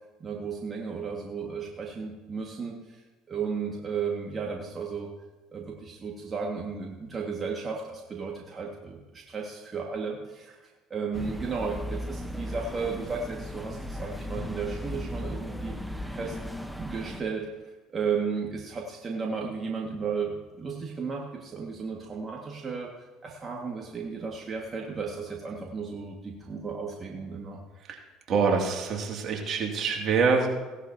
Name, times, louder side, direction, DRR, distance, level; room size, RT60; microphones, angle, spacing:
voice 1, 0.2-3.0 3.3-5.1 5.5-10.6 10.9-15.8 16.1-16.4 16.8-17.5 17.9-22.9 23.2-27.6, right 5 dB, 30° right, -1 dB, 1.9 m, -34 dB
sound 1, 11.1-17.2, left 1 dB, ahead, 1.0 m, -36 dB
voice 2, 28.3-30.5, right 5 dB, 50° right, 1 dB, 2.6 m, -25 dB
17.0 x 11.5 x 2.9 m, 1.2 s
hypercardioid pair, 75°, 0 cm